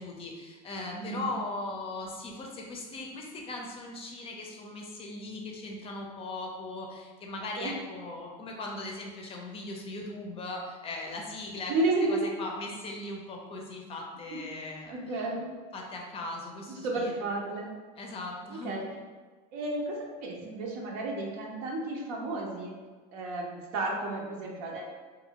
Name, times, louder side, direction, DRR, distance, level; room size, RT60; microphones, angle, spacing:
voice 1, 0.0-11.7 12.1-15.3 15.7-17.2 18.0-18.9, left 2 dB, 30° left, 0 dB, 0.5 m, -39 dB
voice 2, 0.9-1.2 7.6-7.7 11.7-12.3 14.9-15.5 16.7-17.7 18.5-18.8 19.5-22.7 23.1-24.8, right 2 dB, 65° right, -1 dB, 0.7 m, -32 dB
2.6 x 2.6 x 2.9 m, 1.4 s
supercardioid pair, 115°, 20 cm